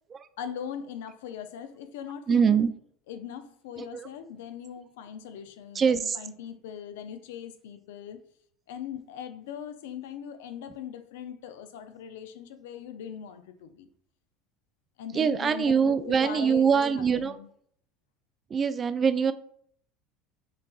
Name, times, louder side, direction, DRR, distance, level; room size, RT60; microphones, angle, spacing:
voice 1, 0.4-2.6 3.1-8.2 8.7-13.9 15.0-17.5, left 8 dB, 85° left, 0.4 m, -40 dB
voice 2, 2.3-2.7 3.8-4.1 5.7-6.2 15.1-17.4 18.5-19.3, right 6 dB, 30° right, 0.3 m, -24 dB
5.3 x 2.5 x 2.3 m
supercardioid pair, 100°, 0 cm